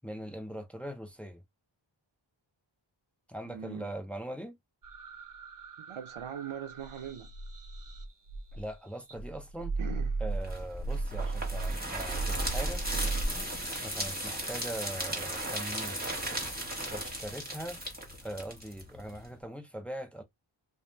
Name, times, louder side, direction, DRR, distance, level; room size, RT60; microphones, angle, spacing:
voice 1, 0.0-1.4 3.3-4.6 8.5-9.7 10.2-12.8 13.8-16.0 16.9-17.8 18.2-20.2, right 1 dB, 5° left, 0.6 m, -41 dB
voice 2, 3.4-3.9 5.8-7.3 9.8-10.1, right 8 dB, 85° right, 0.7 m, -41 dB
sound 1, 4.8-8.7 9.1-13.3, right 3 dB, 45° right, 0.8 m, -36 dB
sound 2, 10.4-19.3, right 1 dB, 20° right, 1.3 m, -36 dB
2.4 x 2.1 x 3.2 m
wide cardioid pair, 50°, 47 cm